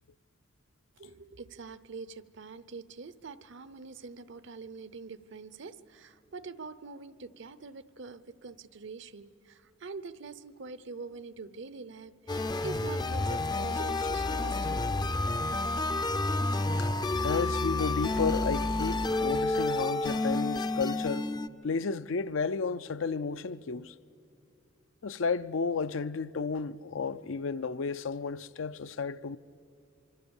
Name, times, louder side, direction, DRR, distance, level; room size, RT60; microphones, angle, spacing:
voice 1, 1.0-15.1, right 4 dB, 60° right, 0.8 m, -44 dB
sound 1, 12.3-21.5, left 2 dB, 20° left, 0.5 m, -30 dB
voice 2, 17.2-21.3 21.6-23.9 25.0-29.4, left 5 dB, 70° left, 0.5 m, -32 dB
26.0 x 25.0 x 7.1 m
head